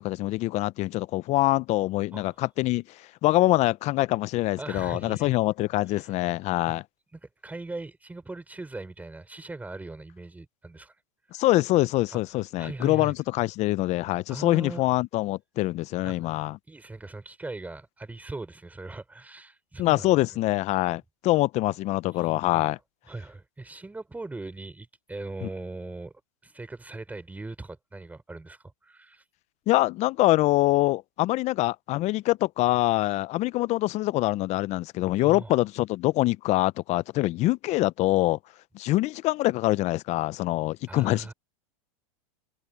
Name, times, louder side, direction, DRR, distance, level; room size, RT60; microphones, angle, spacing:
voice 1, 0.0-6.8 11.3-16.6 19.8-22.8 25.4-25.5 29.7-38.4 38.7-41.3, left 18 dB, 40° left, 0.7 m, -24 dB
voice 2, 4.6-5.4 5.9-6.1 6.7-6.8 7.1-11.0 11.3-11.4 12.1-12.2 12.6-13.1 14.3-14.9 16.0-16.3 16.7-20.2 22.1-22.6 23.1-26.1 26.4-29.2 35.2-35.6 40.9-41.3, right 2 dB, 10° right, 4.0 m, -40 dB
hypercardioid pair, 115°, 18 cm